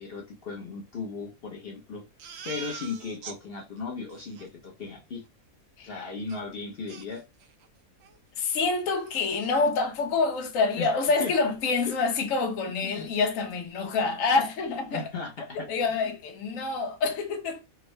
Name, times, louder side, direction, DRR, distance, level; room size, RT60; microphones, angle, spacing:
voice 1, 0.0-2.0 2.4-5.2 5.8-7.2 10.8-10.9 11.2-11.3 11.8-12.0 12.8-13.1 14.9-16.1, left 4 dB, 50° left, 0.8 m, -37 dB
Crying sobbing, 2.2-3.4 3.8-3.9 4.1-4.5 6.3-6.4 6.9-7.7 8.0-8.2 8.5-8.6 9.0-9.6, right 7 dB, 65° right, 0.7 m, -43 dB
voice 2, 8.4-15.1 15.5-17.6, left 4 dB, 70° left, 1.1 m, -27 dB
3.6 x 2.1 x 3.1 m
omnidirectional pair, 1.5 m